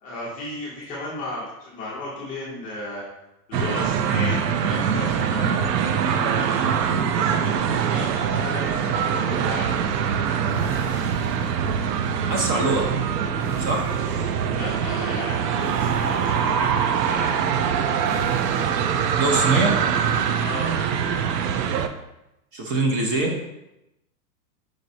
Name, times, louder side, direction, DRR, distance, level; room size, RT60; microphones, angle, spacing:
voice 1, 0.0-3.0 3.5-5.6 6.1-9.7 14.5-17.4 20.4-20.7, left 1 dB, 15° left, -6 dB, 0.5 m, -34 dB
sound 1, 3.5-21.9, right 7 dB, 85° right, 0.5 m, -23 dB
sound 2, 10.4-12.0 13.3-14.3 15.5-16.6 18.0-19.0, equal, 60° right, 1.5 m, -39 dB
voice 2, 12.3-12.9 13.6-13.9 19.1-19.7 22.5-23.3, right 2 dB, 35° right, 1 dB, 0.6 m, -23 dB
5.1 x 3.1 x 2.6 m, 0.90 s
supercardioid pair, 150°, 47 cm